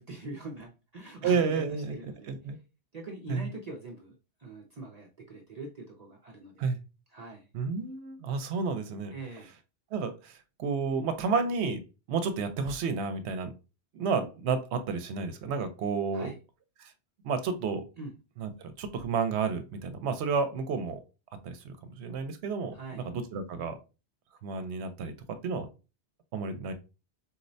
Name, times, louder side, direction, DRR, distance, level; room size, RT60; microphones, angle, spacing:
voice 1, 0.0-1.6 1.9-2.3 2.9-4.1 4.4-6.7 7.1-7.5 9.1-9.5 16.1-16.4 18.0-18.1 22.7-23.0, right 2 dB, 50° right, 0 dB, 0.5 m, -43 dB
voice 2, 1.2-2.0 2.3-2.6 3.3-3.5 6.6-6.8 7.5-9.1 9.9-11.8 12.1-13.5 13.9-16.3 16.8-16.9 17.2-17.9 18.4-21.0 21.4-23.8 24.4-25.7 26.3-26.7, right 5 dB, 80° right, 9 dB, 0.9 m, -31 dB
4.3 x 2.0 x 2.6 m, 0.30 s
omnidirectional pair, 1.1 m